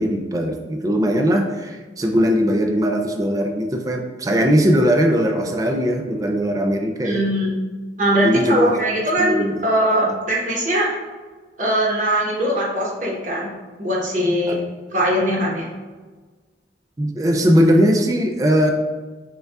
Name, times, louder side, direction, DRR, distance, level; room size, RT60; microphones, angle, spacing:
voice 1, 0.0-7.2 8.2-8.7 9.2-9.6 10.0-10.1 14.5-14.6 17.0-18.7, equal, 20° right, 3 dB, 0.3 m, -19 dB
voice 2, 7.0-7.5 8.0-10.9 11.6-13.5 13.8-14.6 14.9-15.7, right 1 dB, 45° right, -4 dB, 0.9 m, -20 dB
6.4 x 2.3 x 2.3 m, 1.3 s
head